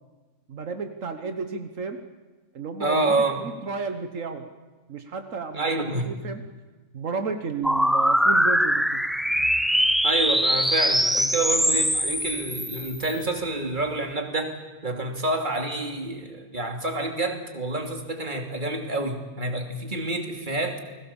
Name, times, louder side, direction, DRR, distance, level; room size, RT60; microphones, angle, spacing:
voice 1, 0.5-2.0 2.5-4.5 4.9-5.7 6.0-6.4 6.9-9.0 14.9-15.1, right 4 dB, 80° right, 7 dB, 1.7 m, -32 dB
voice 2, 2.8-3.4 5.5-6.0 10.0-20.8, right 2 dB, 40° right, 3 dB, 3.0 m, -28 dB
sound 1, 7.6-13.1, equal, ahead, 0.5 m, -22 dB
29.5 x 21.0 x 7.2 m, 1.3 s
omnidirectional pair, 1.3 m